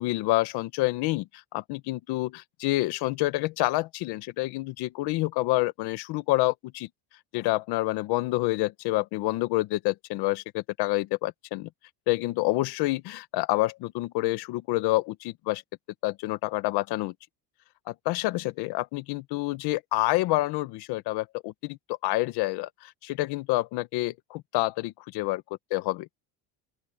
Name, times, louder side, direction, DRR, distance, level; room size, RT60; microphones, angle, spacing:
voice 1, 0.0-6.9 7.3-11.7 12.1-15.6 16.0-17.1 17.9-25.4 25.7-26.2, left 19 dB, 65° left, 1.2 m, -28 dB
open air
cardioid pair, 155°, 43 cm